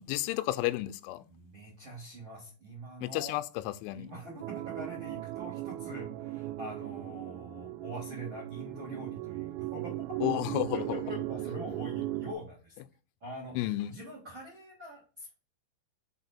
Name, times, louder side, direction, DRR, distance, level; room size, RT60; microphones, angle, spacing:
voice 1, 0.0-1.3 3.0-4.1 10.2-11.0 13.6-14.0, left 16 dB, 90° left, 3.1 m, -32 dB
voice 2, 1.3-3.4 3.9-10.3 10.7-12.8 13.2-15.3, right 1 dB, 60° right, 1.2 m, -44 dB
sound 1, 4.4-12.3, right 16 dB, 85° right, 2.8 m, -37 dB
6.6 x 4.4 x 4.1 m
omnidirectional pair, 5.5 m